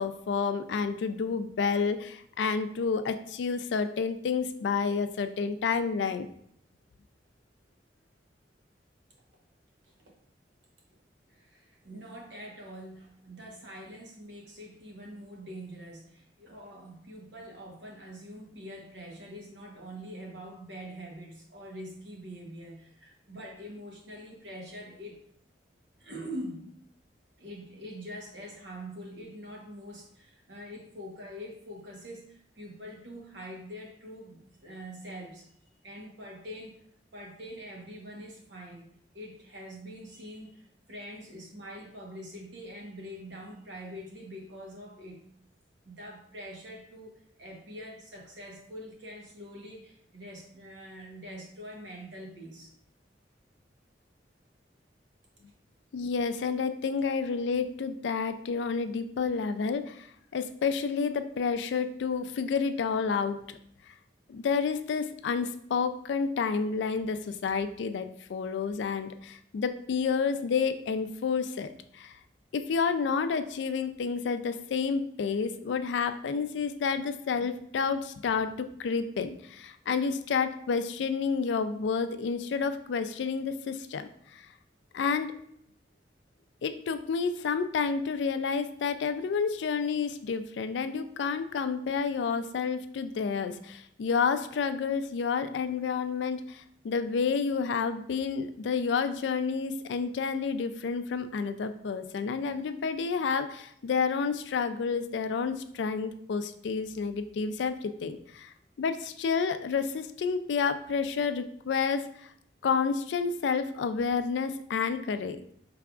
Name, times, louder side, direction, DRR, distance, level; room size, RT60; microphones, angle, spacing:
voice 1, 0.0-6.3 55.9-63.6 63.9-64.0 64.3-72.2 72.5-84.5 84.9-85.3 86.6-112.3 112.6-115.5, left 5 dB, 85° left, 10 dB, 0.3 m, -30 dB
voice 2, 9.8-10.2 11.3-25.2 26.0-26.6 27.4-35.5 35.8-36.8 37.1-45.2 45.8-52.7, equal, 85° right, 0 dB, 1.0 m, -44 dB
4.8 x 3.3 x 2.4 m, 0.67 s
head